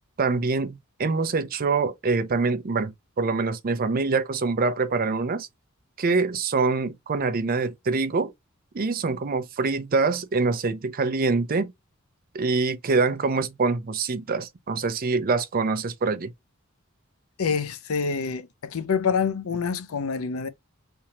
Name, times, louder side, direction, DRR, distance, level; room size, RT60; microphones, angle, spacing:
voice 1, 0.2-5.5 6.0-8.3 8.7-11.7 12.3-16.3, right 4 dB, 45° right, 0.5 m, -25 dB
voice 2, 17.4-20.5, left 5 dB, 80° left, 0.5 m, -26 dB
3.5 x 2.8 x 2.9 m
head